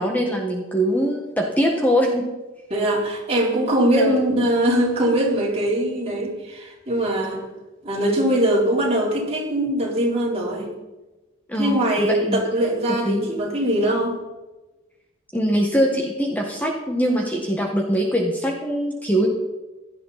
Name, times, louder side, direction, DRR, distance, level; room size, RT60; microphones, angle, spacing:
voice 1, 0.0-2.2 3.9-4.2 11.5-12.4 13.0-13.2 15.3-19.3, equal, 10° left, 0 dB, 1.6 m, -22 dB
voice 2, 2.7-7.4 7.8-10.7 11.5-14.2, right 1 dB, 30° right, -3 dB, 3.9 m, -22 dB
16.5 x 12.0 x 4.2 m, 1.1 s
head